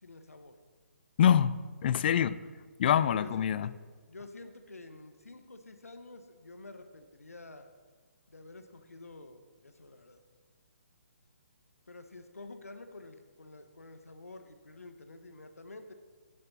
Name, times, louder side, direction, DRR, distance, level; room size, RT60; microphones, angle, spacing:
voice 1, 0.0-0.6 2.9-3.7 4.1-7.7 8.3-10.2 11.9-15.9, left 2 dB, 85° left, 8 dB, 1.0 m, -49 dB
voice 2, 1.2-2.4 2.8-3.7, left 9 dB, 40° left, 17 dB, 0.4 m, -25 dB
10.5 x 9.9 x 4.1 m, 1.5 s
figure-of-eight pair, 140°, 8 cm